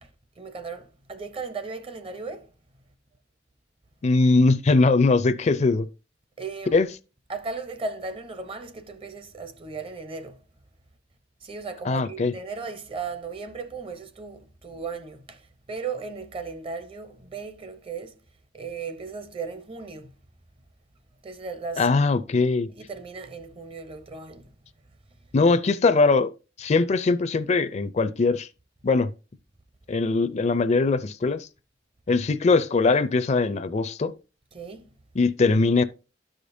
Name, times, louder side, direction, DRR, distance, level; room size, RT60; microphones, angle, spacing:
voice 1, 0.0-2.5 6.4-6.8 7.3-10.4 11.4-18.2 18.5-20.1 21.2-21.9 22.7-24.5 34.5-34.9, right 4 dB, 30° right, 0.7 m, -36 dB
voice 2, 4.0-5.9 6.7-6.9 11.9-12.3 21.8-22.7 25.3-26.3 26.6-28.5 28.8-29.1 29.9-31.5 32.1-34.1 35.2-35.8, left 3 dB, 40° left, 0.4 m, -21 dB
12.5 x 5.0 x 2.6 m
head